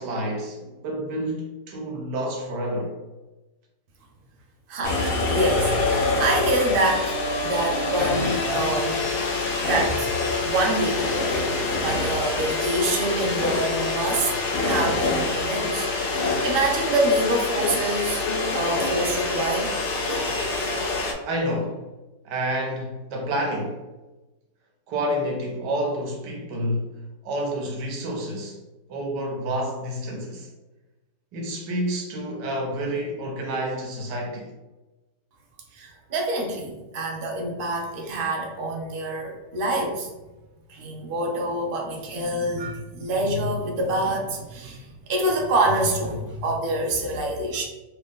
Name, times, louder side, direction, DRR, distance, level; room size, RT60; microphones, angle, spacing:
voice 1, 0.0-2.9 21.3-21.8 22.2-23.8 24.9-26.9 27.2-28.6 28.9-30.5 31.3-34.5, equal, 85° right, 1.3 m, -29 dB
voice 2, 4.7-7.2 7.4-9.0 9.6-14.3 14.6-18.2 18.5-19.7 20.1-20.5 35.7-40.1 40.7-47.7, right 1 dB, 65° right, 0.5 m, -26 dB
sound 1, 4.8-21.1, left 3 dB, 85° left, 0.5 m, -26 dB
2.9 x 2.8 x 3.5 m
omnidirectional pair, 1.8 m